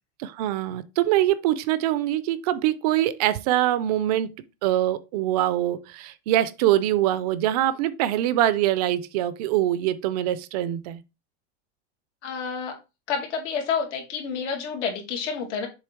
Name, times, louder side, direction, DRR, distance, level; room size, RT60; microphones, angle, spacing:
voice 1, 0.2-4.3 4.6-11.0, right 13 dB, 35° right, 0.4 m, -24 dB
voice 2, 12.2-12.8 13.1-15.7, left 6 dB, 90° left, 2.3 m, -29 dB
7.1 x 3.1 x 4.4 m
supercardioid pair, 170°, 35 cm